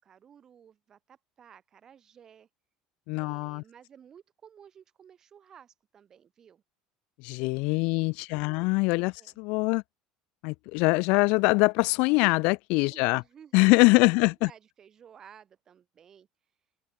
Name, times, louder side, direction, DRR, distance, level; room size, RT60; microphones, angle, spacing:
voice 1, 0.0-2.5 3.2-6.6 7.8-8.8 9.1-9.4 12.9-16.3, right 8 dB, 25° right, 4.7 m, -55 dB
voice 2, 3.1-3.6 7.2-9.8 10.4-13.2 13.5-14.5, left 28 dB, 65° left, 0.3 m, -23 dB
open air
cardioid pair, 160°, 2 cm